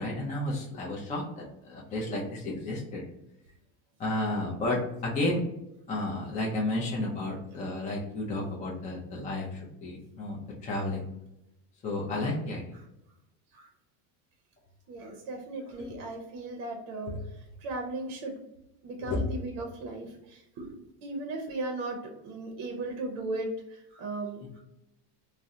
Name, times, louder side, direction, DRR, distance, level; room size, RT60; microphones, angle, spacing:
voice 1, 0.0-3.0 4.0-5.4 5.9-10.4 10.6-11.1 11.8-12.6 15.8-16.1 17.1-17.2 19.0-19.2, left 2 dB, 20° left, -4 dB, 0.4 m, -32 dB
voice 2, 14.9-18.3 18.8-20.8 21.0-22.0 22.2-24.6, right 2 dB, 55° right, 2 dB, 0.6 m, -37 dB
2.6 x 2.1 x 3.5 m, 0.89 s
cardioid pair, 150°, 42 cm